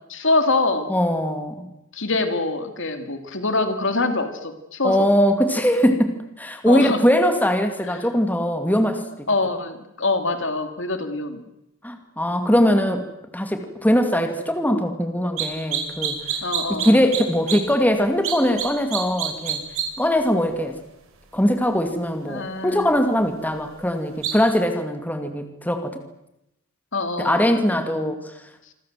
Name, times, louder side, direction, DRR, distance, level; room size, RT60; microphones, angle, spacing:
voice 1, 0.1-0.9 1.9-5.1 6.6-7.0 9.3-11.4 16.4-17.0 22.3-22.9 26.9-27.4, left 3 dB, 60° left, 7 dB, 3.1 m, -24 dB
voice 2, 0.9-1.7 4.8-9.3 11.8-13.1 13.3-16.2 16.7-19.6 20.0-20.8 21.3-26.0 27.2-28.3, equal, 10° left, 6 dB, 2.6 m, -21 dB
sound 1, 15.4-15.5 15.7-17.2 17.5-17.6 18.2-18.7 18.9-19.8 24.2-24.3, right 10 dB, 70° right, 5.9 m, -25 dB
27.5 x 25.0 x 7.8 m, 0.86 s
head